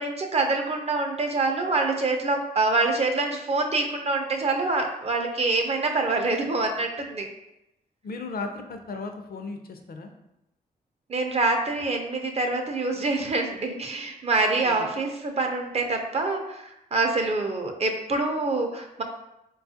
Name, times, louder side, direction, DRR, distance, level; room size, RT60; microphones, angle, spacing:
voice 1, 0.0-7.3 11.1-19.0, right 3 dB, 40° right, 3 dB, 0.5 m, -26 dB
voice 2, 8.0-10.1 14.6-14.9, left 3 dB, 60° left, 5 dB, 0.5 m, -36 dB
4.2 x 2.3 x 2.7 m, 0.87 s
cardioid pair, 95°, 17 cm